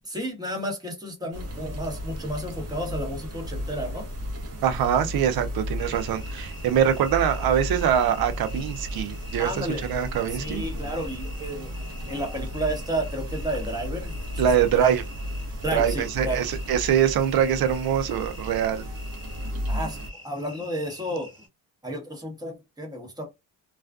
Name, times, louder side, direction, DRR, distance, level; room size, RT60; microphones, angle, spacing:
voice 1, 0.0-4.1 9.4-9.9 10.3-11.7 12.1-14.9 15.6-16.4 19.7-20.0 20.2-21.3 21.8-23.3, right 1 dB, 10° right, 1.0 m, -32 dB
sound 1, 1.3-20.1, equal, 40° right, 0.9 m, -34 dB
voice 2, 4.6-10.6 14.4-15.0 15.7-18.8, right 9 dB, 65° right, 0.6 m, -23 dB
sound 2, 5.8-21.5, left 1 dB, 10° left, 1.4 m, -46 dB
2.4 x 2.3 x 2.3 m
cardioid pair, 95°, 40 cm